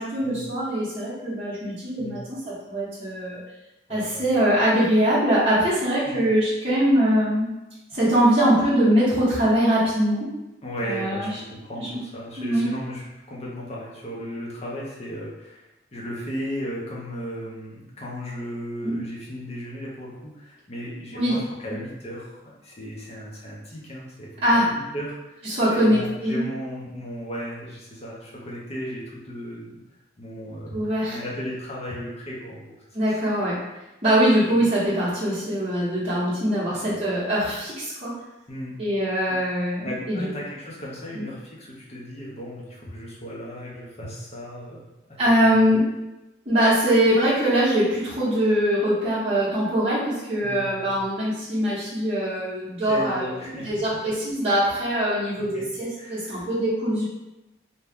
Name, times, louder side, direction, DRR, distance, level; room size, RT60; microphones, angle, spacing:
voice 1, 0.0-3.4 3.9-7.5 7.9-10.3 10.8-11.3 11.8-12.0 12.4-12.7 18.8-18.9 21.1-21.4 24.4-24.7 25.4-26.4 30.7-31.2 32.9-33.6 34.0-38.1 38.8-40.3 41.1-41.2 45.2-45.8 46.5-53.3 53.6-57.0, equal, 30° right, -12 dB, 0.9 m, -22 dB
voice 2, 3.9-4.2 6.1-6.2 7.9-8.0 10.6-15.6 15.9-29.8 30.2-32.8 33.1-33.2 34.4-34.5 36.7-37.1 38.5-38.7 39.3-39.4 39.8-44.8 45.2-45.7 50.4-50.9 52.8-53.7 55.4-55.7 56.0-56.4, equal, 35° left, -5 dB, 0.7 m, -35 dB
2.7 x 2.2 x 3.4 m, 0.99 s
head